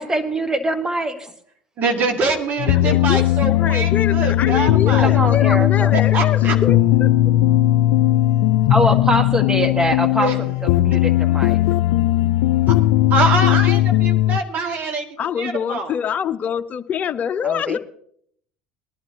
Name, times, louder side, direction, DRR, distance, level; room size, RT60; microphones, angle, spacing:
voice 1, 0.0-1.3 3.2-3.3 5.0-5.9 8.7-11.6 17.4-17.8, right 1 dB, 15° right, 1.5 m, -23 dB
voice 2, 1.8-5.2 5.9-6.5 10.2-10.3 13.1-15.0 15.4-15.9, right 3 dB, 50° right, 1.9 m, -24 dB
sound 1, 2.6-14.4, left 14 dB, 75° left, 0.4 m, -17 dB
voice 3, 2.7-7.1 14.7-14.9 15.2-17.8, left 8 dB, 45° left, 0.7 m, -26 dB
19.5 x 11.0 x 2.8 m
hypercardioid pair, 75°, 4 cm